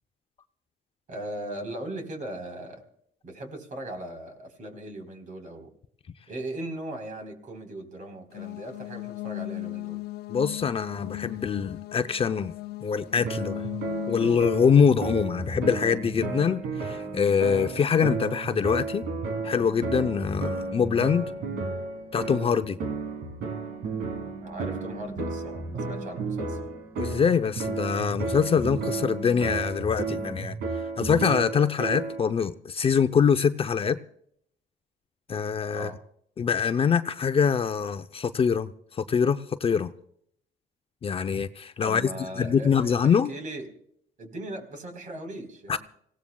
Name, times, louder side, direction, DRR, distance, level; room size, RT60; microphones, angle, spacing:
voice 1, 1.1-2.8 3.2-5.7 6.3-10.0 24.4-26.6 35.7-36.0 41.8-43.7 44.2-45.8, right 1 dB, 50° right, 5 dB, 4.2 m, -38 dB
sound 1, 8.3-14.3, left 21 dB, 70° left, 0.5 m, -37 dB
voice 2, 10.3-12.5 12.8-13.6 14.1-19.0 19.4-21.3 22.1-22.8 27.0-30.6 31.0-34.0 35.3-35.9 36.4-38.7 39.0-39.9 41.0-42.1 42.4-43.3 45.7-45.8, left 6 dB, 35° left, 10 dB, 0.7 m, -24 dB
sound 2, 13.0-30.4, right 1 dB, 15° right, 3.2 m, -46 dB
sound 3, 13.2-32.3, right 4 dB, 75° right, 3.2 m, -33 dB
26.0 x 17.5 x 2.3 m, 0.67 s
cardioid pair, 110°, 17 cm